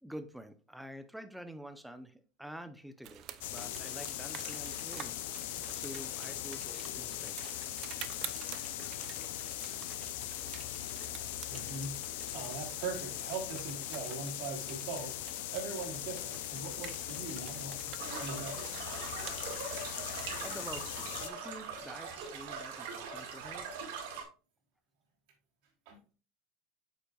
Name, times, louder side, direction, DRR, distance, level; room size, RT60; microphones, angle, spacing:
voice 1, 0.0-3.2 3.5-7.6 20.4-23.7, equal, ahead, 0.7 m, -48 dB
sound 1, 3.0-20.7, right 11 dB, 45° right, 0.6 m, -49 dB
sound 2, 3.4-21.3, left 14 dB, 80° left, 0.5 m, -40 dB
voice 2, 11.5-18.8 25.9-26.0, right 4 dB, 70° right, 2.9 m, -41 dB
sound 3, 18.0-24.2, right 5 dB, 85° right, 1.9 m, -42 dB
8.4 x 5.5 x 2.4 m
supercardioid pair, 150°, 0 cm